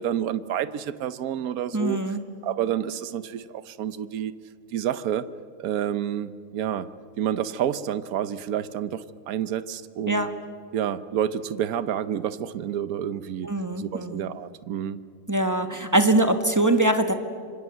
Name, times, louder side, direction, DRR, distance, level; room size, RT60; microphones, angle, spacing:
voice 1, 0.0-2.2 2.4-4.3 4.7-5.2 5.6-6.9 7.2-10.3 10.7-13.5 13.8-15.0, right 10 dB, 70° right, 14 dB, 1.3 m, -29 dB
voice 2, 1.7-2.2 10.1-10.3 13.4-14.2 15.3-17.1, right 1 dB, 10° right, 7 dB, 1.3 m, -22 dB
25.5 x 25.5 x 7.9 m, 2.1 s
omnidirectional pair, 1.6 m